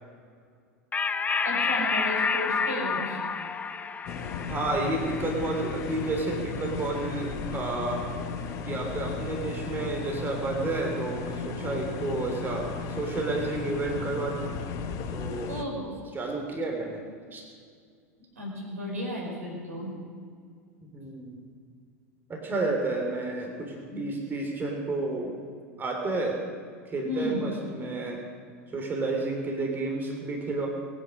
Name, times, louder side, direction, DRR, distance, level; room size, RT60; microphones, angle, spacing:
sound 1, 0.9-7.8, left 5 dB, 20° left, 0.8 m, -31 dB
voice 1, 1.4-3.2 15.5-15.9 18.4-19.9 27.1-27.5, equal, 75° right, -1 dB, 5.4 m, -33 dB
sound 2, 4.1-15.6, left 5 dB, 45° left, 1.4 m, -35 dB
voice 2, 4.5-8.0 8.6-14.5 15.1-15.5 16.1-17.0 17.3-17.4 20.9-21.3 22.3-25.3 25.8-26.4 26.9-28.2 28.7-30.7, right 2 dB, 25° right, 1 dB, 3.5 m, -31 dB
21.5 x 9.7 x 6.5 m, 2.1 s
figure-of-eight pair, 85°, 8 cm